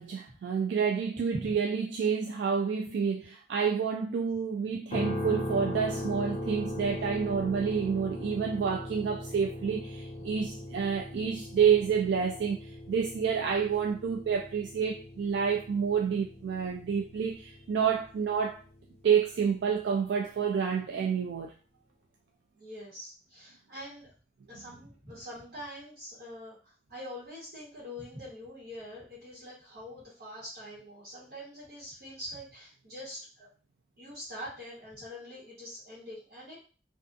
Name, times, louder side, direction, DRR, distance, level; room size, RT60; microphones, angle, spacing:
voice 1, 0.0-18.6 19.0-21.5, right 6 dB, 80° right, 0.3 m, -29 dB
sound 1, 4.9-18.9, left 1 dB, 40° left, 0.5 m, -39 dB
voice 2, 22.5-24.1 24.5-33.5 34.0-36.6, left 1 dB, 60° right, 1.1 m, -44 dB
2.6 x 2.3 x 2.4 m
head